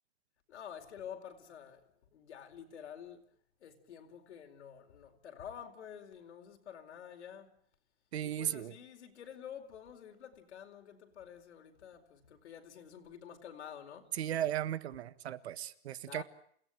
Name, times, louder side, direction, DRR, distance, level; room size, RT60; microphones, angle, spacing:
voice 1, 0.5-1.8 2.1-3.2 3.6-7.5 8.2-14.1 16.1-16.2, left 8 dB, 85° left, 4.6 m, -49 dB
voice 2, 8.1-8.7 14.1-16.2, right 11 dB, 70° right, 1.7 m, -36 dB
29.0 x 17.5 x 9.2 m
supercardioid pair, 180°, 33 cm